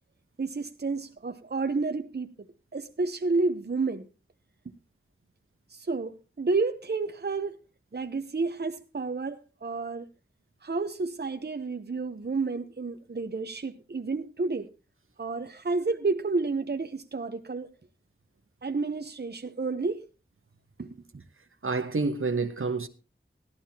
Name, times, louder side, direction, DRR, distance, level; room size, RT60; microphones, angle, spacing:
voice 1, 0.4-4.1 5.7-7.6 7.9-10.1 10.6-14.7 15.2-17.7 18.6-20.1 20.8-20.9, right 3 dB, 50° right, 0.8 m, -30 dB
voice 2, 21.6-22.9, right 3 dB, 80° right, 1.1 m, -28 dB
16.0 x 12.0 x 2.8 m
wide cardioid pair, 50°, 21 cm